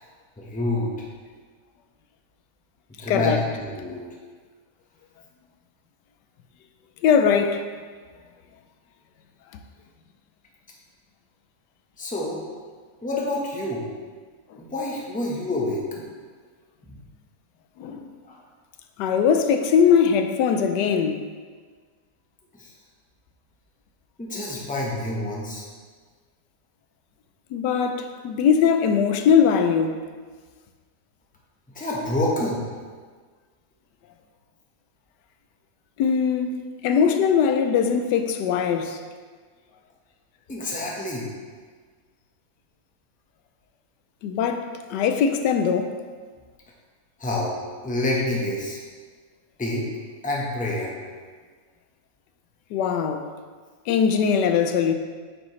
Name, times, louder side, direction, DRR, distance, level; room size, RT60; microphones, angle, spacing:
voice 1, 0.4-0.9 3.0-4.0 12.0-12.4 13.0-13.9 14.6-15.8 16.8-17.0 18.2-18.4 22.5-22.7 24.2-25.6 31.7-32.6 40.5-41.3 47.2-47.5 47.8-48.8 49.6-49.9 50.2-50.9, left 1 dB, 5° left, 0.8 m, -27 dB
voice 2, 3.1-3.4 7.0-7.6 17.8-18.1 19.0-21.3 27.5-30.0 36.0-39.0 44.2-46.0 52.7-53.3 53.9-54.9, left 7 dB, 85° left, 1.2 m, -21 dB
8.3 x 6.2 x 3.2 m
omnidirectional pair, 1.8 m